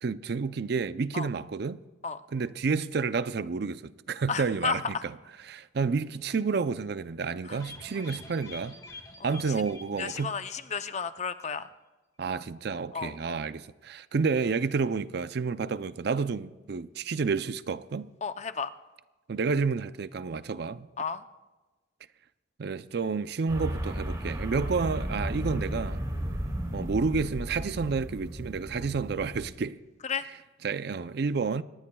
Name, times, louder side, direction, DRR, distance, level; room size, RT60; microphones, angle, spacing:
voice 1, 0.0-1.8 2.3-5.1 5.5-8.8 9.2-10.4 12.2-18.1 19.3-20.9 22.6-26.0 26.7-29.8 30.6-31.6, right 4 dB, 55° right, 0.5 m, -30 dB
voice 2, 4.3-5.0 7.4-7.6 9.2-9.3 10.0-11.6 12.9-13.1 18.2-18.7 21.0-21.2 30.0-30.3, left 5 dB, 35° left, 0.6 m, -32 dB
sound 1, 7.6-11.1 11.3-11.4 11.7-11.8, left 2 dB, 20° left, 2.2 m, -47 dB
sound 2, 23.5-29.5, equal, 20° right, 2.6 m, -34 dB
25.5 x 19.5 x 2.3 m
head